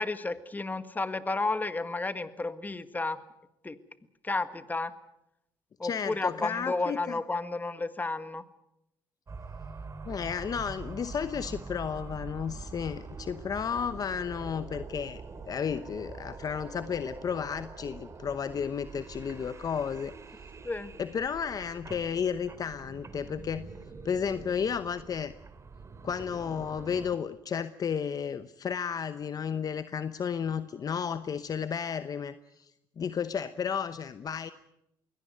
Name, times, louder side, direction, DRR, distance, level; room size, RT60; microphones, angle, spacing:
voice 1, 0.0-3.2 3.6-3.8 4.2-4.9 5.8-8.4 20.6-20.9, left 3 dB, 20° left, 12 dB, 1.6 m, -32 dB
voice 2, 5.8-7.2 10.0-15.2 15.5-20.1 21.0-23.7 24.0-25.3 26.0-32.7 33.0-34.5, left 7 dB, 45° left, 12 dB, 0.9 m, -33 dB
sound 1, 9.3-27.2, right 4 dB, 35° right, 2.6 m, -44 dB
22.5 x 17.5 x 9.2 m, 0.83 s
supercardioid pair, 80°, 9 cm